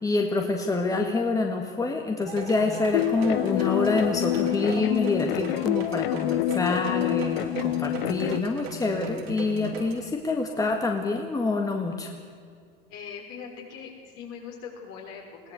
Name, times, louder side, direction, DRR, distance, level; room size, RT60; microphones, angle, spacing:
voice 1, 0.0-12.1, left 3 dB, 10° left, 3 dB, 1.7 m, -27 dB
sound 1, 2.2-10.0, right 5 dB, 90° right, 3.6 m, -37 dB
sound 2, 2.9-8.4, left 17 dB, 70° left, 0.5 m, -27 dB
voice 2, 12.9-15.5, left 6 dB, 55° left, 1 dB, 5.9 m, -41 dB
21.0 x 17.5 x 8.2 m, 2.2 s
hypercardioid pair, 115°, 30 cm